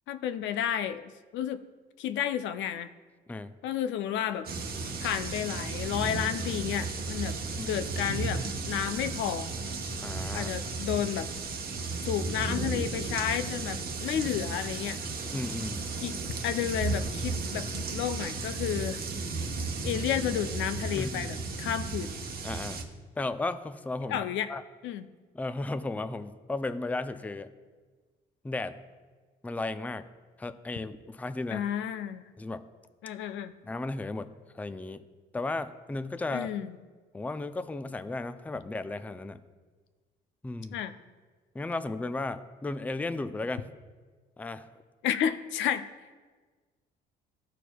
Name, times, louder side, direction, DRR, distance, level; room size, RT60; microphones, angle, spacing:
voice 1, 0.1-1.6 2.0-2.9 3.6-4.5 5.0-7.4 7.7-9.5 10.3-11.3 12.0-15.0 16.0-19.0 19.8-22.1 24.1-24.5 24.8-25.1 31.5-32.2 33.0-33.5 36.3-36.8 40.7-40.9 45.0-45.9, left 10 dB, 75° left, 11 dB, 0.5 m, -31 dB
sound 1, 4.5-22.8, right 3 dB, 50° right, 1.0 m, -34 dB
voice 2, 10.0-10.5 15.3-15.8 20.9-21.3 22.4-22.8 23.2-24.6 25.3-27.5 28.4-28.8 29.4-30.1 30.4-31.6 32.4-32.7 33.6-35.0 35.3-36.5 37.1-39.4 40.4-40.8 41.5-43.7 44.4-44.7, left 2 dB, 10° left, 11 dB, 0.4 m, -35 dB
13.0 x 4.5 x 2.3 m, 1.4 s
supercardioid pair, 75°, 20 cm